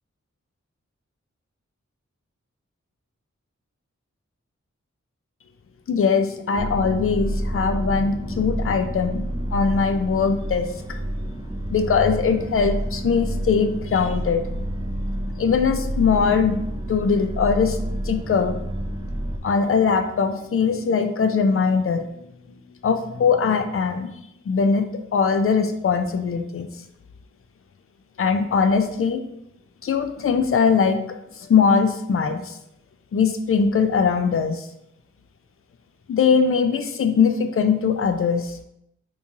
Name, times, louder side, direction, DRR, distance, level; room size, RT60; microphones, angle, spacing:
voice 1, 5.9-10.7 11.7-14.4 15.4-16.6 16.9-17.8 18.0-18.5 19.4-24.1 24.5-26.7 28.2-29.2 29.8-31.0 31.4-32.6 33.1-34.7 36.1-38.6, left 5 dB, 50° left, 7 dB, 0.4 m, -21 dB
sound 1, 6.6-19.4, right 1 dB, 15° right, 0.4 m, -29 dB
3.0 x 2.7 x 3.6 m, 0.80 s
wide cardioid pair, 60°, 29 cm